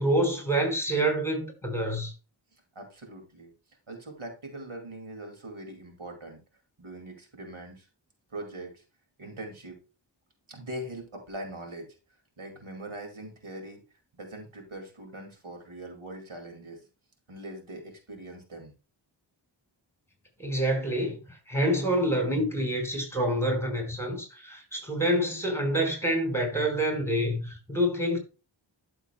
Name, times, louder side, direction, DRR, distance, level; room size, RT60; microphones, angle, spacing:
voice 1, 0.0-2.1 20.4-21.2 21.5-28.2, right 1 dB, 5° left, 4.7 m, -27 dB
voice 2, 2.8-3.5 3.9-6.4 6.8-7.9 8.3-8.8 9.2-9.8 10.5-11.8 12.4-13.8 14.1-16.8 17.3-18.7, right 1 dB, 90° right, 2.4 m, -41 dB
12.0 x 7.0 x 2.2 m
wide cardioid pair, 55°, 47 cm